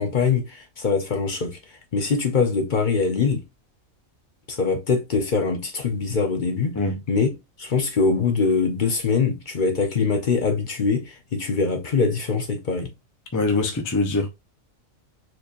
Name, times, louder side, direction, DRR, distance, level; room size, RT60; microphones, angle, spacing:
voice 1, 0.0-3.4 4.5-6.8 7.1-7.3 7.6-12.9, left 4 dB, 45° left, 0.7 m, -23 dB
voice 2, 13.3-14.3, left 3 dB, 30° left, 0.3 m, -23 dB
4.4 x 2.8 x 2.5 m
omnidirectional pair, 1.4 m